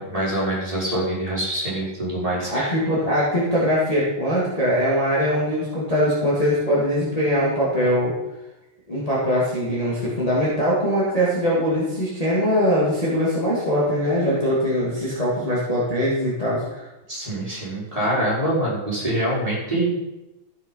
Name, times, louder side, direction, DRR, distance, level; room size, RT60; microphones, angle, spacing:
voice 1, 0.0-2.7 17.1-20.1, right 1 dB, 15° right, -7 dB, 4.8 m, -25 dB
voice 2, 2.5-8.1 8.9-16.8, equal, 20° left, -8 dB, 2.8 m, -22 dB
14.5 x 7.0 x 5.8 m, 0.98 s
omnidirectional pair, 2.2 m